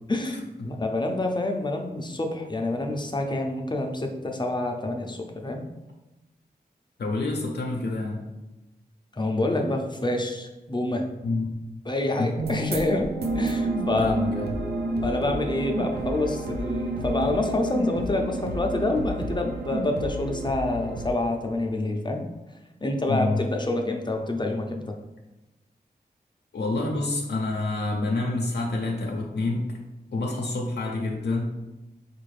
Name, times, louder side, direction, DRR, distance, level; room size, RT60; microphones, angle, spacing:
voice 1, 0.1-5.6 9.1-11.1 11.8-13.1 13.3-14.1 15.0-22.3 22.8-25.0, left 2 dB, 25° left, 3 dB, 0.5 m, -27 dB
voice 2, 7.0-8.2 11.2-11.5 12.2-12.3 14.0-14.5 23.1-23.4 26.5-29.8 30.1-31.5, left 2 dB, 90° left, 0 dB, 0.5 m, -27 dB
sound 1, 12.4-21.1, right 2 dB, 80° right, 0.5 m, -30 dB
4.5 x 2.5 x 3.2 m, 1.0 s
wide cardioid pair, 70°, 17 cm